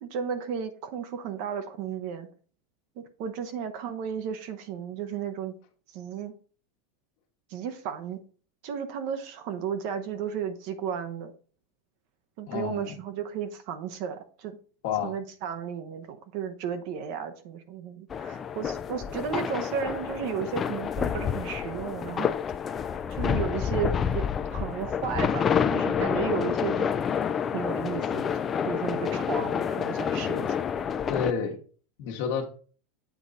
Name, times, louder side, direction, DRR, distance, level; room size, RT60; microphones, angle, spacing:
voice 1, 0.0-2.3 3.0-5.5 5.9-6.3 7.5-8.2 8.6-11.3 12.4-14.6 15.0-22.3 23.1-24.3 24.5-26.9 27.5-28.3 28.6-30.5, right 7 dB, 45° right, 0.8 m, -34 dB
voice 2, 12.5-12.9 14.8-15.2 26.1-26.2 31.1-31.6 32.0-32.4, left 7 dB, 55° left, 1.4 m, -29 dB
sound 1, 18.1-31.3, left 7 dB, 20° left, 0.3 m, -28 dB
8.2 x 3.8 x 4.1 m
supercardioid pair, 170°, 0 cm